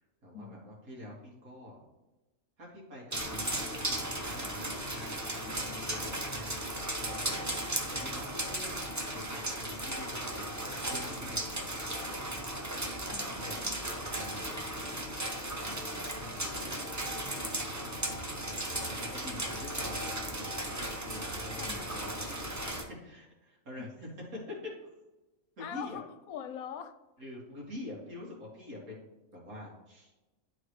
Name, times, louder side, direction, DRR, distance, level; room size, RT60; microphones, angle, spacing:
voice 1, 0.2-1.8 2.6-7.2 7.9-12.1 12.8-13.7 13.9-14.6 15.6-17.0 18.3-18.5 19.1-20.6 21.0-21.8 22.2-22.5 23.0-24.1 24.5-24.6 25.6-26.0 27.2-30.1, left 1 dB, 75° right, -4 dB, 2.6 m, -46 dB
sound 1, 3.1-22.8, right 1 dB, 20° right, 0.6 m, -36 dB
voice 2, 13.1-13.8 15.7-16.4 21.6-22.2 23.8-23.9 25.6-27.0, left 8 dB, 80° left, 10 dB, 1.1 m, -44 dB
11.5 x 4.0 x 3.2 m, 1.1 s
omnidirectional pair, 1.5 m